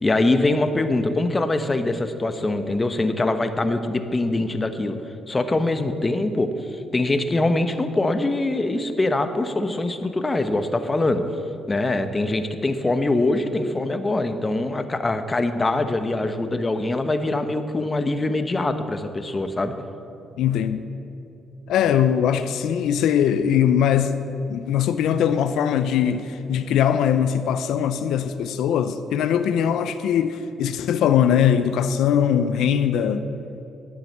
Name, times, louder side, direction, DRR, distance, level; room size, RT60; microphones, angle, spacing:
voice 1, 0.0-5.0 5.3-11.2 11.7-19.7, left 2 dB, 20° left, 0.9 m, -23 dB
voice 2, 20.4-20.8 21.7-24.1 24.5-33.2, left 9 dB, 85° left, 0.5 m, -21 dB
11.0 x 8.9 x 7.3 m
cardioid pair, 90°, 0 cm